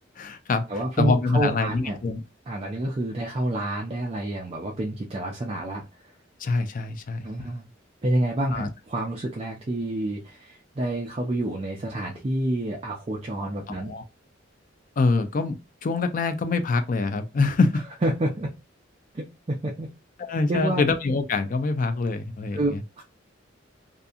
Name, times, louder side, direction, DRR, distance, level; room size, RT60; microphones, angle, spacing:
voice 1, 0.2-2.2 6.4-7.5 8.5-8.7 13.7-14.0 15.0-15.6 15.8-17.8 20.2-22.8, left 3 dB, 45° left, 0.4 m, -25 dB
voice 2, 0.7-2.0 2.5-5.8 7.2-7.7 8.0-14.0 18.0-18.5 19.1-19.9 20.5-20.9 22.5-23.0, right 1 dB, 30° right, 0.4 m, -28 dB
2.7 x 2.5 x 2.3 m
head